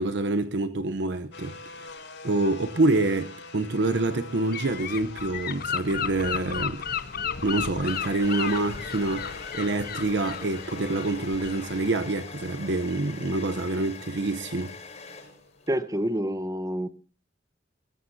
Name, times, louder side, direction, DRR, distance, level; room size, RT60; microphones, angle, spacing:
voice 1, 0.0-1.9 2.2-6.8 7.4-14.7, right 2 dB, 65° right, 0.9 m, -27 dB
sound 1, 1.3-16.2, left 3 dB, 70° left, 5.7 m, -46 dB
Gull seagull / Wind, 4.5-11.8, left 7 dB, 55° left, 0.9 m, -34 dB
sound 2, 7.0-15.7, left 5 dB, 35° left, 5.5 m, -43 dB
voice 2, 15.7-16.9, equal, 20° right, 1.0 m, -27 dB
22.0 x 19.0 x 2.8 m
head